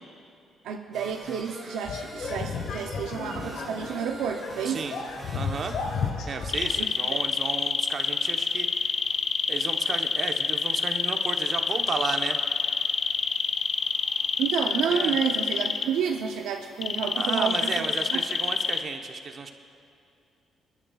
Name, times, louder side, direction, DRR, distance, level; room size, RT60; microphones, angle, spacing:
voice 1, 0.6-4.9 6.8-7.2 14.4-18.2, right 7 dB, 90° right, 4 dB, 0.6 m, -30 dB
sound 1, 0.9-6.1, right 1 dB, 30° right, 2.7 m, -44 dB
sound 2, 1.8-6.8, left 5 dB, 75° left, 1.2 m, -33 dB
voice 2, 5.3-5.7 6.3-9.0 9.5-12.4 14.9-15.2 17.1-19.5, right 5 dB, 50° right, 5 dB, 1.0 m, -33 dB
sound 3, 6.5-15.9 16.8-18.8, left 6 dB, 55° left, 0.6 m, -27 dB
26.5 x 11.0 x 2.4 m, 2.6 s
cardioid pair, 90°, 0 cm